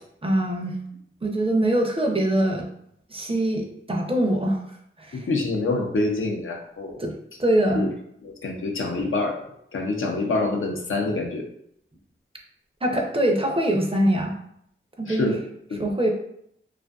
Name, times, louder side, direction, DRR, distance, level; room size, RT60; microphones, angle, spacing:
voice 1, 0.2-0.8 1.2-2.7 3.1-4.6 5.0-5.3 7.0-7.1 7.4-7.9 12.8-14.3 15.0-15.4 15.8-16.1, right 1 dB, 25° right, 1 dB, 0.5 m, -23 dB
voice 2, 5.1-6.9 7.7-7.9 8.2-9.4 9.7-11.4 15.1-15.4, left 2 dB, 75° left, 1 dB, 0.5 m, -26 dB
2.5 x 2.4 x 2.3 m, 0.72 s
wide cardioid pair, 45°, 21 cm